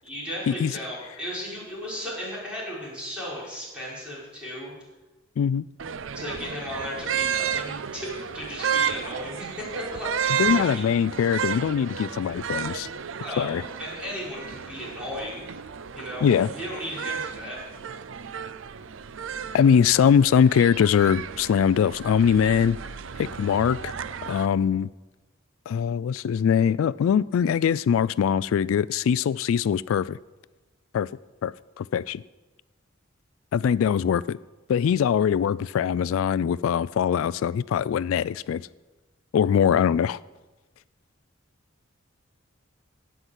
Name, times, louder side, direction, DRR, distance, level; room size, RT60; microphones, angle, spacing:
voice 1, 0.0-4.7 6.1-10.8 13.2-15.4 15.9-17.6, equal, 5° right, -7 dB, 5.6 m, -35 dB
sound 1, 5.8-24.5, right 8 dB, 70° right, 0.5 m, -32 dB
voice 2, 10.4-12.9 13.4-13.6 16.2-16.5 19.5-22.8 23.2-23.9 24.3-24.9 25.7-30.2 30.9-31.1 31.4-32.2 33.5-34.4 34.7-38.6 39.3-40.2, left 7 dB, 80° left, 19 dB, 0.3 m, -22 dB
17.0 x 5.8 x 8.1 m, 1.2 s
head